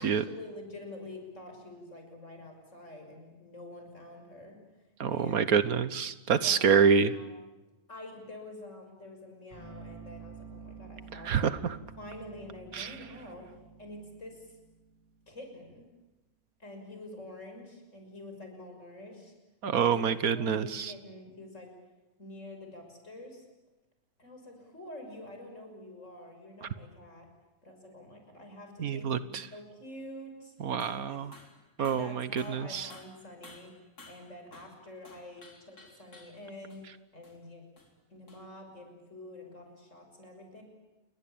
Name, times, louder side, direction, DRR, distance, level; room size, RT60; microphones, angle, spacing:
voice 1, 0.0-4.5 5.1-5.4 6.3-6.9 7.1-7.4 7.9-11.5 12.0-13.5 13.8-14.6 15.3-15.9 16.6-19.3 19.6-20.1 20.3-21.7 22.2-23.5 24.2-27.3 27.6-30.5 31.1-31.2 31.8-36.8 37.1-37.6 38.1-40.6, left 1 dB, 55° left, 4 dB, 6.5 m, -47 dB
voice 2, 5.0-7.1 11.3-11.8 12.7-12.9 19.6-20.9 28.8-29.4 30.6-31.3 31.8-32.9, right 6 dB, 70° right, 13 dB, 1.6 m, -27 dB
sound 1, 9.5-15.5, right 5 dB, 20° left, 7.3 m, -50 dB
sound 2, 30.8-31.1 31.3-31.6 31.8-34.8 35.0-36.4 36.7-36.8 37.2-37.4 37.8-37.9 38.3-38.4, left 2 dB, 80° left, 4.3 m, -54 dB
29.0 x 22.5 x 8.8 m, 1.1 s
omnidirectional pair, 1.6 m